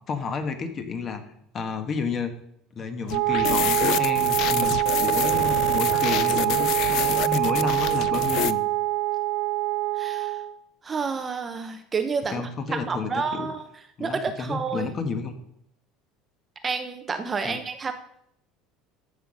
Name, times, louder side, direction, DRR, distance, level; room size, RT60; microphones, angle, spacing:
voice 1, 0.1-1.2 1.5-2.3 2.7-4.7 5.0-8.6 12.3-13.5 14.0-15.3 17.4-17.6, left 4 dB, 30° left, 8 dB, 1.2 m, -31 dB
sound 1, 3.1-8.5, left 14 dB, 50° left, 0.4 m, -28 dB
Wind instrument woodwind instrument, 3.1-10.5, right 18 dB, 70° right, 0.9 m, -24 dB
voice 2, 10.0-10.4 10.8-12.4 12.7-13.7 14.0-14.9 16.6-17.9, right 5 dB, 20° right, 8 dB, 0.6 m, -29 dB
14.0 x 5.6 x 5.2 m, 0.73 s
cardioid pair, 160°, 0 cm